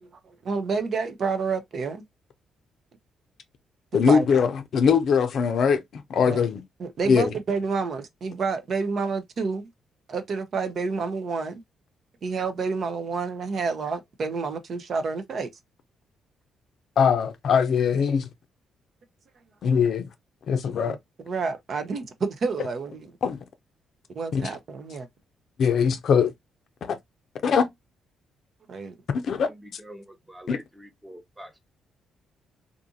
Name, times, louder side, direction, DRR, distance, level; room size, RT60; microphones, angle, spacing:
voice 1, 0.0-2.0 4.1-4.2 6.3-6.4 6.8-9.7 10.1-11.6 12.2-15.5 20.9-21.0 21.3-23.1 24.1-25.1 28.7-28.9, right 4 dB, 55° right, 0.6 m, -29 dB
voice 2, 3.9-6.6 7.0-7.3 17.0-18.3 19.6-20.1 20.5-21.0 23.2-23.4 24.3-24.4 25.6-26.3 26.8-27.0 27.4-27.7 29.1-29.5 30.5-30.6, left 6 dB, 65° left, 0.5 m, -21 dB
voice 3, 29.8-31.6, right 1 dB, 10° right, 0.8 m, -45 dB
2.5 x 2.5 x 2.6 m
supercardioid pair, 65°, 0 cm